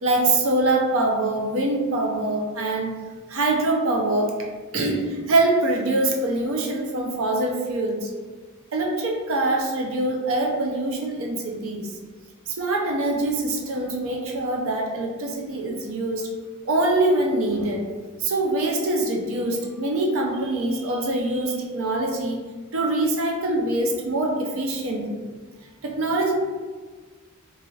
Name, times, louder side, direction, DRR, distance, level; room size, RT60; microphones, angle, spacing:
voice 1, 0.0-2.9 3.3-4.3 4.7-8.1 8.7-11.9 12.5-16.3 16.6-17.9 18.2-22.4 22.7-25.2 25.8-26.3, right 2 dB, 65° right, 0 dB, 0.5 m, -24 dB
2.6 x 2.4 x 3.1 m, 1.4 s
head